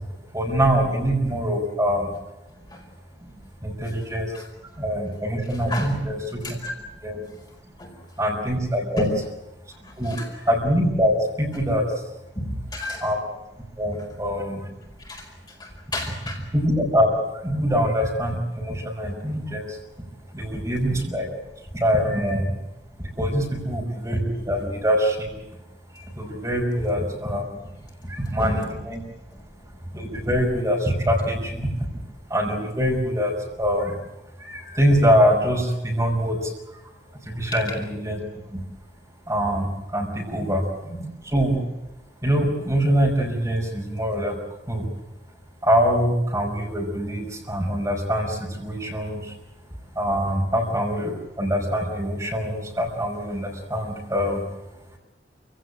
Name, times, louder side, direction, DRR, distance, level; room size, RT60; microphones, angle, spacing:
voice 1, 0.3-2.1 3.2-3.3 3.6-4.4 4.8-6.4 7.0-7.2 8.2-9.1 10.0-11.8 13.0-13.2 13.8-14.7 16.5-17.1 17.4-19.8 20.3-21.3 21.7-22.4 23.0-25.4 25.9-27.5 28.0-29.0 29.9-31.7 32.3-33.3 33.6-33.9 34.4-36.8 37.2-38.2 38.5-38.6 39.3-40.6 41.3-41.6 42.2-44.4 44.7-44.9 45.6-49.3 50.0-54.4, equal, 20° right, 0 dB, 5.6 m, -24 dB
voice 2, 5.5-6.0 6.4-6.7 7.3-7.4 7.8-8.1 9.0-9.1 9.7-10.3 12.3-13.0 15.0-16.4 28.0-28.1 28.4-28.8 37.4-37.6 40.4-40.5 40.8-41.0, left 1 dB, 25° left, 0 dB, 4.7 m, -32 dB
28.0 x 17.0 x 9.0 m, 0.96 s
head